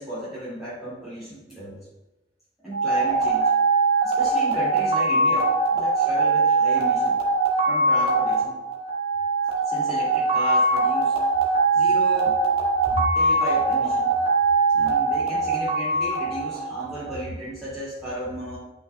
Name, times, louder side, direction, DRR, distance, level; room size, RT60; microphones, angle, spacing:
voice 1, 0.0-1.8 2.6-3.5 4.0-7.2 7.7-8.6 9.6-11.2 11.7-12.4 12.9-14.1 14.7-18.6, right 1 dB, ahead, -11 dB, 2.1 m, -34 dB
sound 1, 2.7-17.2, right 3 dB, 35° right, 1.7 m, -22 dB
11.0 x 5.9 x 2.2 m, 1.0 s
head